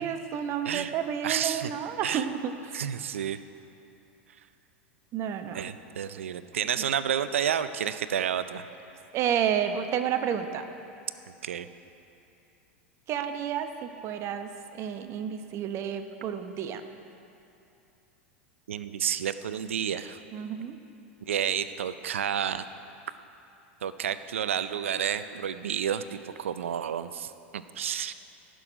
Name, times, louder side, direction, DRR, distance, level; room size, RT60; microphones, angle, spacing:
voice 1, 0.0-2.8 5.1-5.7 6.8-6.9 9.1-10.6 13.1-16.8 20.3-20.8, right 8 dB, 40° right, 8 dB, 0.9 m, -31 dB
voice 2, 1.2-1.7 2.0-2.3 2.7-3.4 5.5-8.7 11.4-11.7 18.7-20.2 21.3-22.6 23.8-28.1, right 9 dB, 85° right, 13 dB, 0.5 m, -30 dB
17.5 x 6.3 x 5.1 m, 2.8 s
hypercardioid pair, 100°, 7 cm